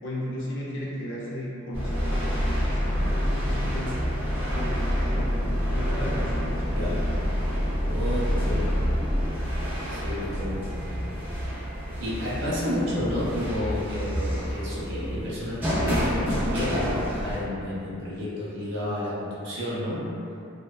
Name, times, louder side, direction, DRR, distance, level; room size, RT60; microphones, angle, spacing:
voice 1, 0.0-4.1 4.5-7.0, equal, 55° left, -6 dB, 0.4 m, -35 dB
sound 1, 1.7-17.4, equal, 10° right, 0.4 m, -27 dB
voice 2, 6.7-7.1 7.8-8.8 9.9-11.1 12.0-20.2, left 1 dB, 55° right, -8 dB, 0.6 m, -31 dB
2.5 x 2.1 x 2.3 m, 2.7 s
head